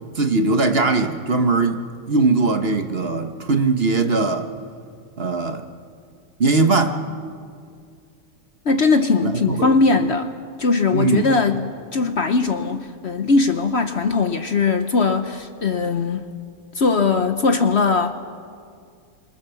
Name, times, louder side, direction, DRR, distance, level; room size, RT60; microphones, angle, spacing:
voice 1, 0.2-4.5 5.2-5.6 6.4-7.0 9.2-9.7 10.9-11.3, right 3 dB, 40° right, 7 dB, 1.3 m, -20 dB
voice 2, 8.6-10.3 10.6-16.2 16.7-18.1, left 4 dB, 50° left, 8 dB, 1.0 m, -20 dB
26.5 x 24.0 x 7.0 m, 2.2 s
omnidirectional pair, 1.7 m